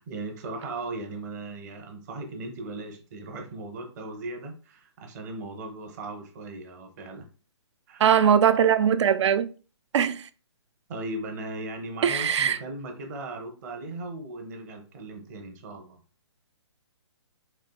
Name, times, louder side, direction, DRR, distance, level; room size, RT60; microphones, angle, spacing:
voice 1, 0.0-7.3 7.9-8.1 10.9-16.0, right 2 dB, 35° right, 0.8 m, -37 dB
voice 2, 8.0-9.5 9.9-10.2 12.0-12.6, right 8 dB, 75° right, 0.4 m, -21 dB
4.4 x 2.5 x 2.3 m
hypercardioid pair, 145°, 15 cm